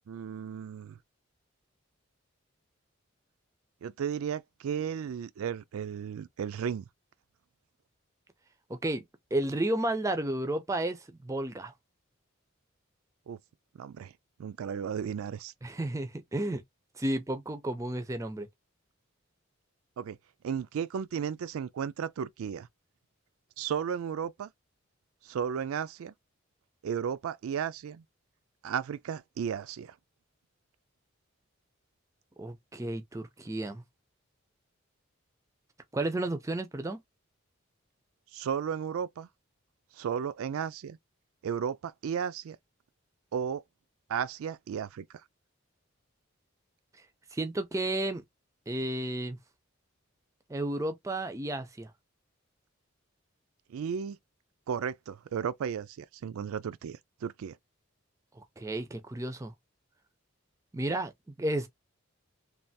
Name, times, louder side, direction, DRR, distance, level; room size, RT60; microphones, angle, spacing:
voice 1, 0.1-1.0 3.8-6.9 13.3-13.4 13.8-14.1 14.4-15.5 20.0-20.2 20.4-22.7 23.6-24.5 25.2-26.1 26.8-28.0 28.6-30.0 38.3-39.3 39.9-41.0 41.4-42.6 43.3-43.6 44.1-45.1 53.7-54.2 54.7-57.6, right 7 dB, 85° right, 0.3 m, -34 dB
voice 2, 8.7-9.0 9.3-11.7 15.6-16.6 17.0-18.5 32.4-33.8 35.9-37.0 47.3-48.2 48.7-49.4 50.5-51.9 58.4-59.5 60.7-61.7, right 1 dB, 15° right, 0.4 m, -32 dB
3.3 x 2.3 x 2.6 m
head